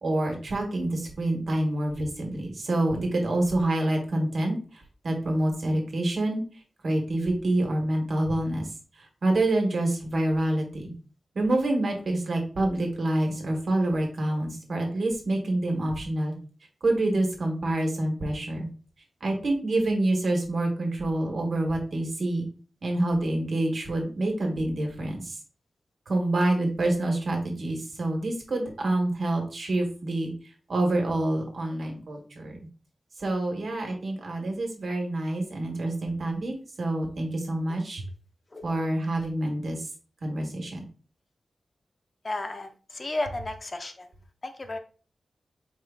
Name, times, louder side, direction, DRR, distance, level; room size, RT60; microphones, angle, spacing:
voice 1, 0.0-6.4 6.8-8.7 9.0-10.9 11.3-16.3 16.8-18.7 19.2-22.5 22.8-25.4 26.1-30.3 30.7-32.6 33.2-38.0 38.6-39.9 40.2-40.8, right 1 dB, 60° right, 2 dB, 1.1 m, -27 dB
voice 2, 42.2-44.1 44.4-44.8, left 2 dB, 30° left, 6 dB, 0.4 m, -33 dB
4.4 x 3.5 x 2.3 m, 0.38 s
wide cardioid pair, 175°, 0 cm